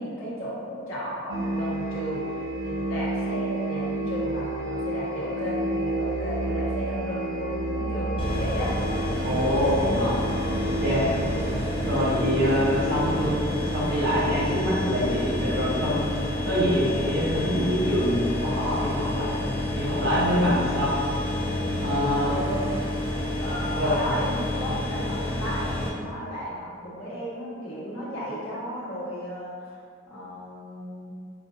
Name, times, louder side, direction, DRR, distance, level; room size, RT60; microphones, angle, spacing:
voice 1, 0.0-8.8 9.7-10.1 22.2-22.6 23.4-29.8 30.1-31.1, equal, 85° left, -8 dB, 1.2 m, -34 dB
sound 1, 1.3-16.8, right 1 dB, 85° right, 0.7 m, -31 dB
sound 2, 8.2-25.9, left 1 dB, 25° left, 0.5 m, -29 dB
voice 2, 9.2-10.1 10.8-11.1 11.8-13.4 13.7-16.0 16.4-19.3 19.7-21.0 21.8-22.3 23.8-24.0, equal, 60° right, -8 dB, 1.1 m, -25 dB
4.7 x 2.5 x 2.6 m, 2.2 s
head